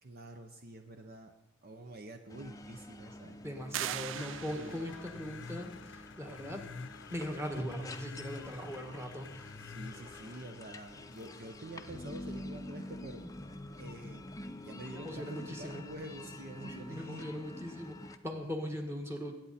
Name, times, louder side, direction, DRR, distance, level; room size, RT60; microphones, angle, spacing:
voice 1, 0.0-1.3 1.6-3.4 4.6-4.9 9.6-13.3 13.8-14.3 14.6-17.3, right 1 dB, 50° right, 6 dB, 0.8 m, -47 dB
sound 1, 2.3-18.2, left 1 dB, 15° left, 0.6 m, -48 dB
voice 2, 3.4-6.7 7.1-9.5 14.9-15.8 16.5-19.4, equal, 15° right, 3 dB, 1.7 m, -40 dB
sound 2, 3.7-5.1, right 11 dB, 70° right, 0.4 m, -39 dB
sound 3, 4.1-13.5, left 4 dB, 65° left, 0.6 m, -50 dB
21.5 x 8.9 x 4.2 m, 0.93 s
head